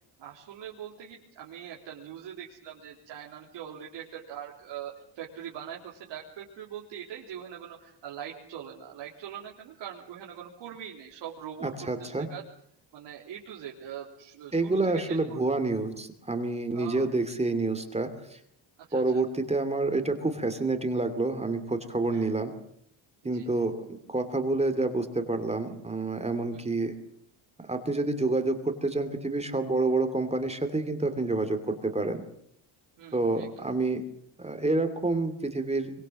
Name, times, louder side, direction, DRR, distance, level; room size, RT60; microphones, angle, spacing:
voice 1, 0.2-11.7 12.0-12.4 12.9-15.5 16.7-17.1 18.9-19.2 22.0-22.3 23.2-23.6 26.5-26.7 33.0-33.7, right 9 dB, 90° right, -2 dB, 3.7 m, -42 dB
voice 2, 11.6-12.3 14.5-18.4 18.9-22.5 23.2-26.9 27.7-32.2 33.1-34.0 34.4-35.9, right 2 dB, 15° right, 8 dB, 2.7 m, -28 dB
24.0 x 23.5 x 7.7 m, 0.68 s
cardioid pair, 120°, 43 cm